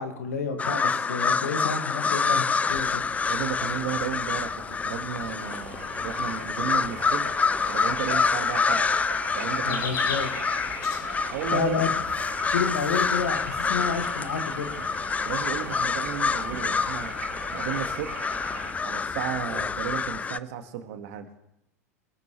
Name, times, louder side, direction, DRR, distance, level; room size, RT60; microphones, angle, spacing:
voice 1, 0.0-3.0 9.7-10.6 11.5-11.9 12.5-14.8, left 6 dB, 80° left, 5 dB, 2.2 m, -30 dB
sound 1, 0.6-20.4, left 5 dB, 15° left, 0.5 m, -27 dB
sound 2, 2.7-20.2, left 5 dB, 45° left, 3.0 m, -43 dB
voice 2, 3.3-8.9 9.3-9.9 11.3-11.8 15.2-17.1 17.5-18.3 18.8-21.3, right 10 dB, 65° right, 6 dB, 1.9 m, -34 dB
sound 3, 5.4-18.7, right 5 dB, 80° right, 3.2 m, -41 dB
23.5 x 12.0 x 3.3 m, 0.83 s
hypercardioid pair, 90°, 8 cm